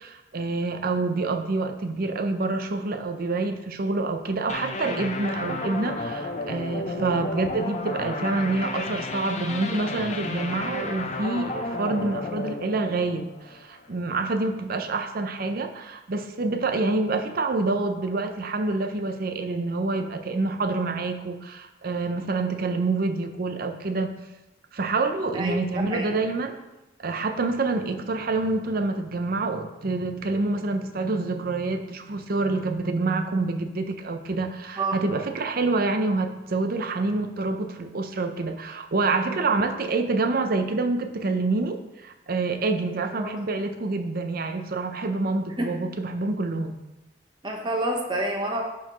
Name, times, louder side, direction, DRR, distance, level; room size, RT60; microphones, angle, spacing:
voice 1, 0.0-24.1 24.7-26.6 27.0-46.8, right 3 dB, 50° right, 7 dB, 0.6 m, -27 dB
sound 1, 4.5-13.8, left 2 dB, 40° left, 0.7 m, -32 dB
voice 2, 25.3-26.1 34.8-35.0 39.2-39.3 43.1-43.3 45.6-45.7 47.4-48.6, right 1 dB, 25° right, 1 dB, 1.1 m, -29 dB
11.0 x 4.4 x 3.0 m, 0.99 s
head